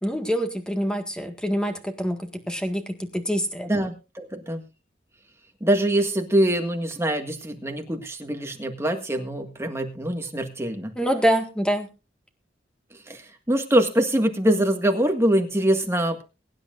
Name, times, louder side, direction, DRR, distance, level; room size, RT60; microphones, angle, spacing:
voice 1, 0.0-3.7 10.9-11.9, equal, 5° left, 6 dB, 1.7 m, -25 dB
voice 2, 3.7-4.6 5.6-10.9 13.1-13.2 13.5-16.2, right 1 dB, 15° right, 4 dB, 1.8 m, -23 dB
22.5 x 10.0 x 2.5 m, 0.29 s
head